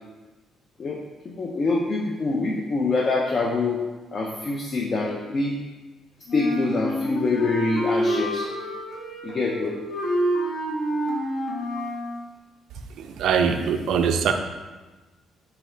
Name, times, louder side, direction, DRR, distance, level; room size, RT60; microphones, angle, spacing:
voice 1, 1.2-3.8 4.1-5.6 6.3-8.5 9.2-9.8, left 3 dB, 40° left, -1 dB, 0.4 m, -25 dB
Wind instrument woodwind instrument, 6.3-12.1, equal, 60° left, 0.8 m, -28 dB
voice 2, 13.2-14.3, right 7 dB, 75° right, 6 dB, 0.3 m, -21 dB
3.4 x 2.2 x 4.2 m, 1.2 s
cardioid pair, 110°, 0 cm